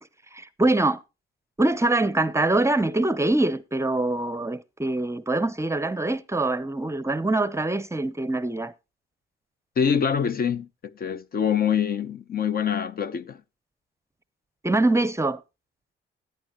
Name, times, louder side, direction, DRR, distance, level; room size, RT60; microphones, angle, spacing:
voice 1, 0.3-1.0 1.6-8.7 14.6-15.4, right 2 dB, 15° right, 0.7 m, -24 dB
voice 2, 9.8-10.7 10.9-13.4, left 7 dB, 50° left, 0.8 m, -25 dB
16.0 x 9.2 x 2.9 m
cardioid pair, 90°, 20 cm